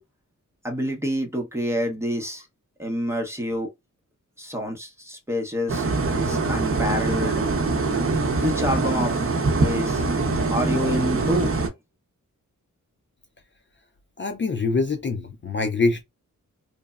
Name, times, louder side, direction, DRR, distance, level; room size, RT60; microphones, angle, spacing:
voice 1, 0.6-2.5 2.8-3.7 4.4-5.9 6.1-7.5 8.4-9.2 9.6-10.0 10.5-11.6, equal, 10° right, 0.7 m, -27 dB
sound 1, 5.7-11.7, right 3 dB, 45° right, 0.7 m, -23 dB
voice 2, 14.2-16.0, left 3 dB, 40° left, 0.4 m, -24 dB
3.1 x 2.0 x 2.3 m
wide cardioid pair, 150°, 31 cm